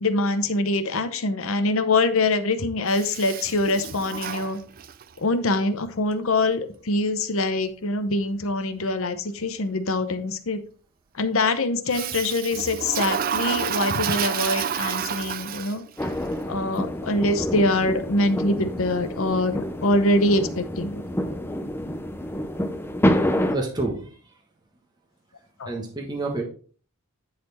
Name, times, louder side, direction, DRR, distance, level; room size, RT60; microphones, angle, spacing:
voice 1, 0.0-4.6 5.2-10.6 11.2-15.8 16.5-21.0 25.6-25.7, left 2 dB, 65° left, 10 dB, 0.8 m, -24 dB
Toilet flush, 2.9-5.1 11.9-16.0, right 8 dB, 40° right, 0.4 m, -29 dB
sound 1, 16.0-23.5, equal, 10° left, 0.6 m, -27 dB
voice 2, 23.5-24.4 25.6-26.4, right 2 dB, 20° right, -1 dB, 1.3 m, -29 dB
10.5 x 4.2 x 4.3 m, 0.42 s
head